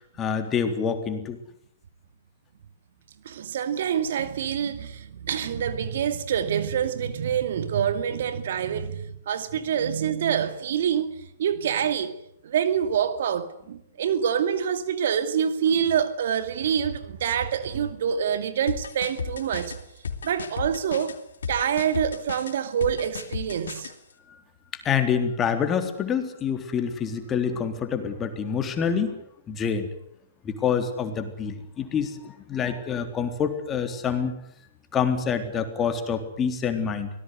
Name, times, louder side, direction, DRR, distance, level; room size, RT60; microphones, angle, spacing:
voice 1, 0.0-1.4 24.8-29.2 29.5-29.9 30.4-34.3 34.9-37.1, left 7 dB, 20° left, 3.7 m, -27 dB
voice 2, 3.2-11.1 11.4-12.1 12.4-19.7 20.2-21.2 21.5-23.9, right 8 dB, 65° right, 2.3 m, -26 dB
sound 1, 18.7-23.9, left 6 dB, 75° left, 2.7 m, -34 dB
24.5 x 18.5 x 9.6 m
hypercardioid pair, 120°, 0 cm